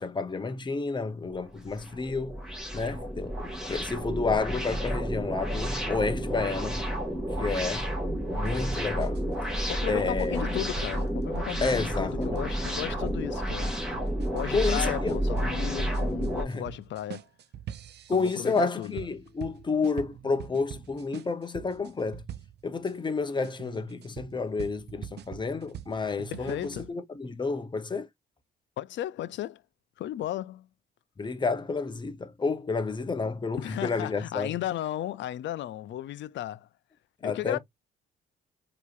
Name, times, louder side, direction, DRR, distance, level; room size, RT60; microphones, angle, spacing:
voice 1, 0.0-2.4 2.7-6.8 7.4-7.9 8.3-9.2 9.9-10.6 11.6-12.4 14.5-15.2 16.4-16.7 18.1-22.2 22.6-28.1 31.2-34.5 37.2-37.6, left 4 dB, 25° left, 0.8 m, -30 dB
sound 1, 1.3-16.4, equal, 5° right, 2.1 m, -31 dB
sound 2, 8.4-22.9 23.4-26.9, right 10 dB, 60° right, 0.6 m, -44 dB
voice 2, 9.7-13.7 14.3-17.3 18.1-19.0 26.3-26.9 28.8-29.6 30.0-30.7 33.6-36.7 37.2-37.6, left 13 dB, 65° left, 0.5 m, -35 dB
4.6 x 3.0 x 2.5 m
cardioid pair, 90°, 20 cm